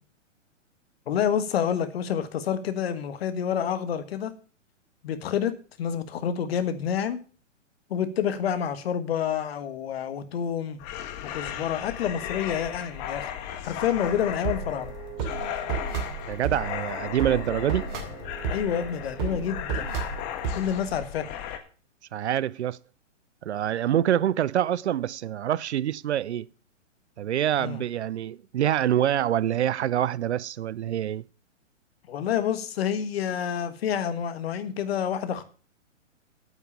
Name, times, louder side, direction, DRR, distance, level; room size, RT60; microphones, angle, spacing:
voice 1, 1.1-4.3 5.0-7.2 7.9-10.8 11.2-13.3 13.6-14.9 18.5-19.8 20.5-21.2 27.6-27.8 32.1-35.4, left 8 dB, 55° left, 1.6 m, -28 dB
sound 1, 10.8-21.6, left 10 dB, 35° left, 1.6 m, -36 dB
sound 2, 14.0-20.7, right 7 dB, 40° right, 2.6 m, -33 dB
voice 2, 16.3-17.9 22.1-22.8 23.4-26.5 27.2-31.2, right 11 dB, 65° right, 0.5 m, -26 dB
8.9 x 8.3 x 6.9 m
figure-of-eight pair, 120°, 37 cm